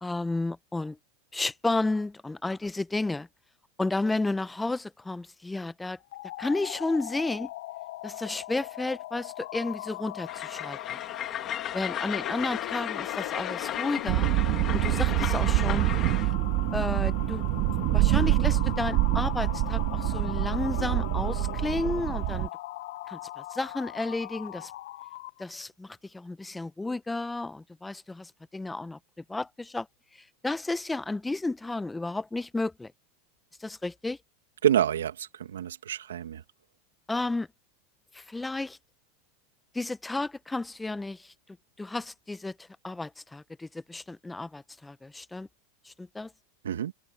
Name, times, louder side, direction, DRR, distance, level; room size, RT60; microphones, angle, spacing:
voice 1, 0.0-1.0 1.3-3.3 3.8-6.0 6.4-7.5 8.0-10.8 11.7-14.3 14.7-15.9 16.7-17.5 17.9-22.5 23.1-24.7 25.4-29.0 29.3-29.9 30.4-32.9 33.6-34.2 37.1-37.5 38.1-38.8 39.7-41.3 41.8-42.5 42.8-45.5 45.8-46.3, left 2 dB, 10° left, 1.1 m, -32 dB
sound 1, 6.0-25.4, left 16 dB, 70° left, 1.2 m, -39 dB
Train, 10.3-16.3, left 10 dB, 35° left, 3.6 m, -35 dB
sound 2, 14.1-22.5, right 23 dB, 55° right, 2.9 m, -26 dB
voice 2, 34.6-36.4 46.6-46.9, right 10 dB, 85° right, 2.6 m, -27 dB
open air
hypercardioid pair, 95°, 0 cm